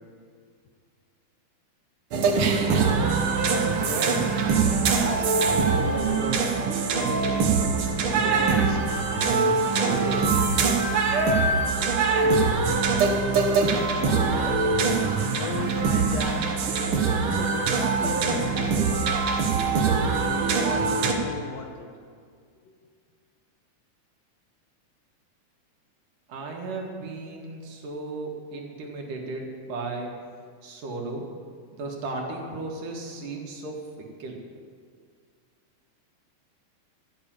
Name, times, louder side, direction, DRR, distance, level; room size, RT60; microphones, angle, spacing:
sound 1, 2.1-21.1, right 4 dB, 60° right, 1.5 m, -23 dB
voice 1, 3.7-4.2 5.0-6.4 6.9-7.5 8.0-8.8 9.6-10.3 26.3-30.1 30.6-31.2 31.7-34.4, right 3 dB, 75° right, 0 dB, 3.3 m, -35 dB
voice 2, 14.0-14.7 15.4-16.5 17.2-19.3 20.0-21.9 22.7-22.8, left 4 dB, 70° left, 2 dB, 1.8 m, -36 dB
15.0 x 6.7 x 8.8 m, 2.1 s
omnidirectional pair, 3.8 m